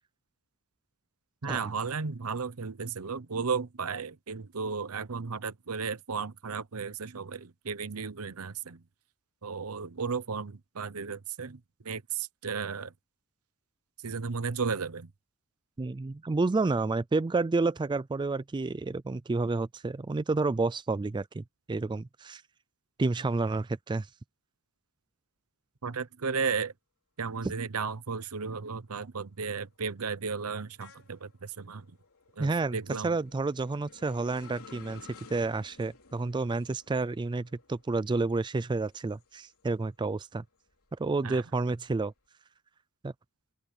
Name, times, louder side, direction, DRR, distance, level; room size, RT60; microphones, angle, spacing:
voice 1, 1.4-8.8 9.4-11.6 11.8-12.9 14.0-15.1 25.8-26.7 27.2-31.9 32.4-33.2 41.2-41.4, right 5 dB, 75° right, 0.9 m, -34 dB
voice 2, 15.8-21.4 21.7-22.4 23.0-24.1 27.4-27.5 32.4-32.8 33.0-35.0 35.3-40.4 41.0-42.1 43.0-43.1, right 3 dB, 20° right, 0.3 m, -30 dB
sound 1, 28.1-28.3 28.7-39.9 40.3-42.1, left 5 dB, 70° left, 3.6 m, -56 dB
open air
head